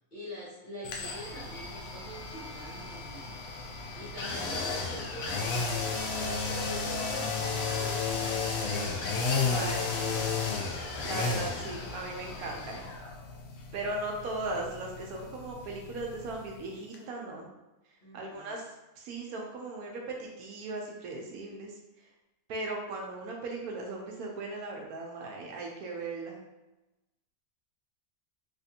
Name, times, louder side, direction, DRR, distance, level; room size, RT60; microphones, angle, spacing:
voice 1, 0.1-5.7 6.1-8.3 18.0-18.6, equal, 40° left, -8 dB, 0.9 m, -45 dB
sound 1, 0.8-16.7 16.9-17.0, left 4 dB, 70° left, 1.0 m, -33 dB
voice 2, 9.4-10.3 11.0-12.9 13.7-17.5 18.1-18.7 19.0-21.7 22.5-26.4, right 2 dB, 75° right, 0 dB, 1.1 m, -38 dB
3.3 x 2.5 x 2.7 m, 1.0 s
omnidirectional pair, 1.6 m